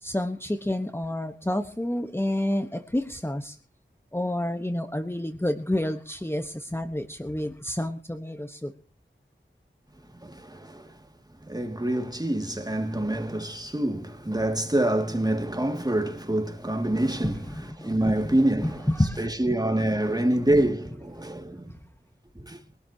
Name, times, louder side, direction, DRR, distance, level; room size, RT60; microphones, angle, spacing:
voice 1, 0.0-3.6 4.1-8.7 17.2-18.3 18.6-19.3 20.5-20.6, left 1 dB, 10° left, 1.2 m, -29 dB
voice 2, 10.1-11.0 11.4-21.8 22.3-22.6, right 1 dB, 20° right, 2.3 m, -26 dB
22.5 x 12.5 x 2.9 m
wide cardioid pair, 45°, 20 cm